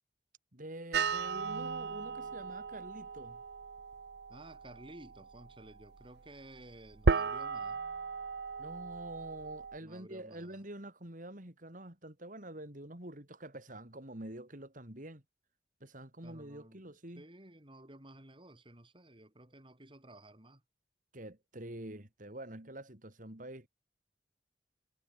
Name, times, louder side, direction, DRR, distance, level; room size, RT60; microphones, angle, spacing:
voice 1, 0.5-3.4 8.6-15.2 15.8-17.2 21.1-23.7, right 1 dB, 50° right, 4.4 m, -47 dB
sound 1, 0.9-9.8, right 4 dB, 65° right, 0.6 m, -36 dB
voice 2, 4.3-7.8 9.8-10.6 16.2-16.8 17.1-20.6, right 1 dB, 30° right, 4.4 m, -54 dB
head